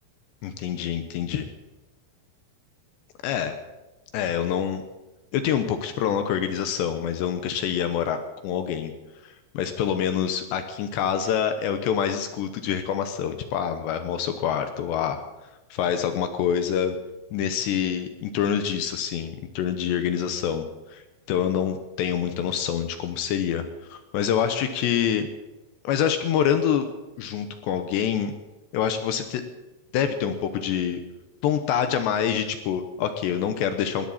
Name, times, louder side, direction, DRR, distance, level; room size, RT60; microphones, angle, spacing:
voice 1, 0.4-1.5 3.2-3.6 4.1-4.8 5.3-8.9 9.2-15.2 15.7-17.0 17.3-21.0 21.3-23.6 23.9-25.3 25.8-26.9 27.2-28.3 28.7-29.4 29.9-31.0 31.4-34.1, left 8 dB, 75° left, 8 dB, 2.7 m, -26 dB
20.0 x 17.0 x 4.2 m, 1.1 s
omnidirectional pair, 5.8 m